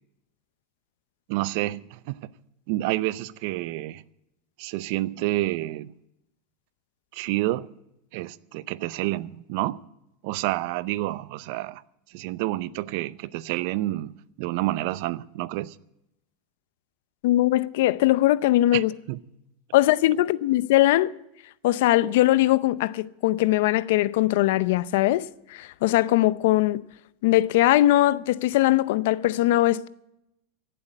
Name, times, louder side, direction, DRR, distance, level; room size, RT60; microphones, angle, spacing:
voice 1, 1.3-2.2 2.7-4.0 4.6-5.9 7.1-7.7 8.1-9.8 10.2-11.8 12.1-15.8 18.7-19.2, right 17 dB, 60° right, 0.5 m, -29 dB
voice 2, 17.2-18.9 19.7-21.1 21.6-26.8 27.2-29.9, left 15 dB, 70° left, 0.5 m, -21 dB
16.5 x 7.8 x 8.9 m
supercardioid pair, 140°, 0 cm